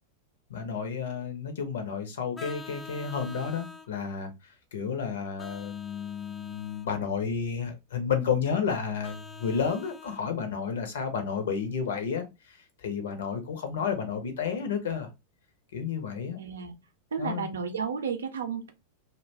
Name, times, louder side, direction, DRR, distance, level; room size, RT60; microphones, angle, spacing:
voice 1, 0.5-15.1 15.7-16.4 17.2-17.5, left 6 dB, 60° left, 0.6 m, -31 dB
Vehicle horn car horn honking, 2.3-3.9 5.4-6.9 9.0-10.2, left 3 dB, 10° left, 0.3 m, -45 dB
voice 2, 16.4-16.7 17.1-18.7, right 6 dB, 70° right, 0.5 m, -32 dB
2.5 x 2.1 x 3.1 m
figure-of-eight pair, 90°, 0 cm